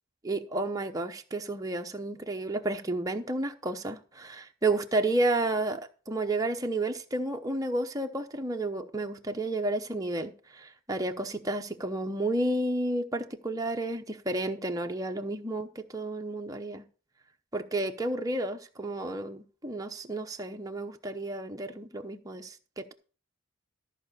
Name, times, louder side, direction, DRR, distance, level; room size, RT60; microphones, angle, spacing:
voice 1, 0.2-16.9 17.5-22.9, right 2 dB, 15° right, 4 dB, 0.8 m, -31 dB
13.5 x 4.9 x 6.7 m, 0.38 s
head